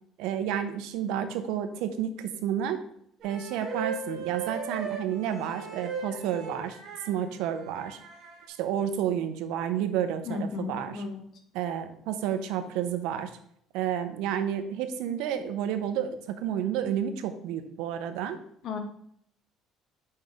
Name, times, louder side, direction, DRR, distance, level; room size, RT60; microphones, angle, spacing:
voice 1, 0.2-2.8 3.2-6.8 7.1-8.0 8.5-11.0 11.5-13.3 13.7-18.4, right 9 dB, 90° right, 9 dB, 0.7 m, -30 dB
sound 1, 3.2-7.1 7.8-8.4, right 5 dB, 55° right, 1.6 m, -36 dB
voice 2, 10.3-11.2 18.6-18.8, left 4 dB, 50° left, 5 dB, 1.0 m, -34 dB
5.6 x 5.3 x 3.5 m, 0.70 s
cardioid pair, 150°, 0 cm